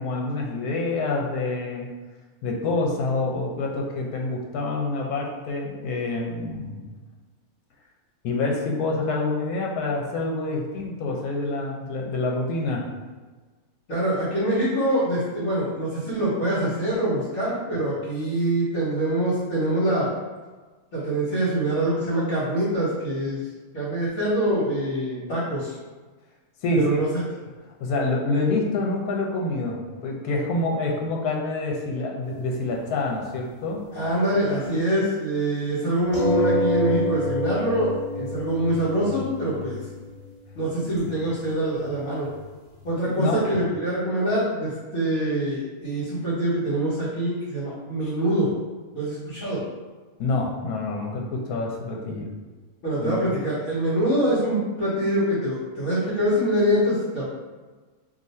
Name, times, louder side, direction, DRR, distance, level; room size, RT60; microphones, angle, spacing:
voice 1, 0.0-1.9 2.4-6.9 8.2-12.9 26.6-27.0 27.8-33.8 43.1-43.4 50.2-52.3 53.0-53.3, left 2 dB, 85° left, 0 dB, 1.1 m, -27 dB
voice 2, 13.9-20.1 20.9-23.4 23.7-25.7 26.8-27.1 33.9-39.8 40.5-42.3 42.8-48.5 48.9-49.6 52.8-57.2, right 1 dB, 65° left, -10 dB, 1.3 m, -24 dB
sound 1, 32.3-32.4 32.7-32.8 36.1-41.2 41.5-41.6 41.8-41.9 42.3-42.4 42.7-42.8, left 1 dB, 25° left, 1.1 m, -28 dB
2.6 x 2.5 x 4.1 m, 1.3 s
omnidirectional pair, 1.6 m